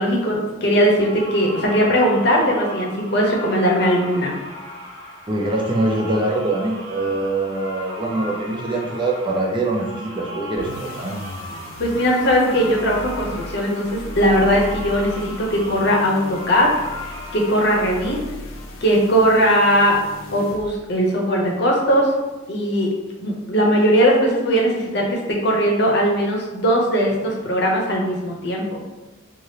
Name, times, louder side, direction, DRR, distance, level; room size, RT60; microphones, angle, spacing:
voice 1, 0.0-4.3 11.8-16.7 17.0-18.2 18.8-20.0 20.3-22.1 22.5-22.9 23.2-28.8, equal, 55° left, -1 dB, 0.7 m, -19 dB
sound 1, 0.8-18.2, left 1 dB, 75° right, 1.1 m, -37 dB
voice 2, 5.3-11.2, right 2 dB, 25° right, -1 dB, 0.4 m, -23 dB
sound 2, 10.5-20.9, left 1 dB, 90° left, 0.4 m, -36 dB
3.3 x 2.4 x 2.7 m, 1.1 s
head